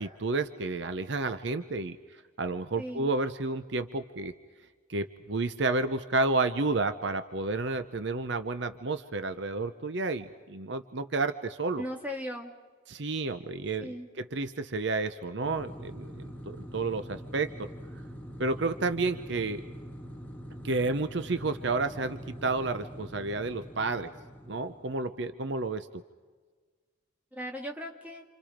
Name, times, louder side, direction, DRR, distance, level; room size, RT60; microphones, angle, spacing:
voice 1, 0.0-4.3 4.9-11.8 12.9-17.7 18.4-19.6 20.6-24.1 24.5-25.9, right 3 dB, 60° right, 10 dB, 0.8 m, -31 dB
voice 2, 2.8-3.1 11.8-12.5 13.8-14.1 27.3-28.2, equal, 10° right, 0 dB, 2.1 m, -37 dB
sound 1, 15.4-25.2, equal, 10° left, 1.7 m, -44 dB
28.5 x 27.5 x 5.1 m, 1.5 s
head